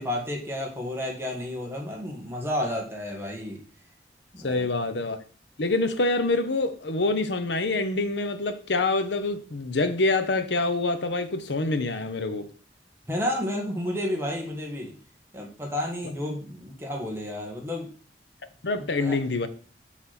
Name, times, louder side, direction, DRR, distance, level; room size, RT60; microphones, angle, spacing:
voice 1, 0.0-3.6 4.3-4.7 13.1-14.9 15.3-17.9 18.7-19.2, left 1 dB, 15° right, 1.8 m, -31 dB
voice 2, 4.4-5.2 5.6-12.5 18.6-19.5, left 3 dB, 80° left, 0.9 m, -26 dB
6.3 x 5.9 x 5.9 m
head